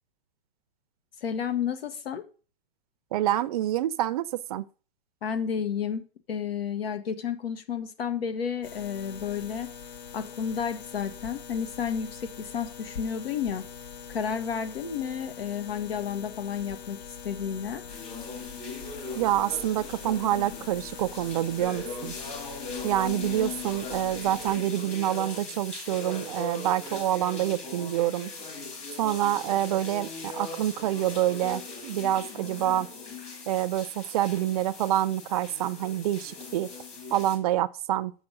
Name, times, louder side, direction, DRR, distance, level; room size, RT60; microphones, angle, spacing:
voice 1, 1.2-2.2 5.2-9.7 10.1-13.6 14.1-17.0 17.2-17.8, left 7 dB, 75° left, 1.6 m, -31 dB
voice 2, 3.1-4.7 19.1-22.2 22.8-28.3 29.0-32.9 33.5-36.7 37.1-38.1, right 13 dB, 40° right, 0.5 m, -27 dB
sound 1, 8.6-24.6, left 6 dB, 45° left, 0.9 m, -43 dB
sound 2, 17.9-37.4, left 3 dB, 20° left, 2.1 m, -39 dB
7.1 x 5.9 x 6.3 m
hypercardioid pair, 150°, 30 cm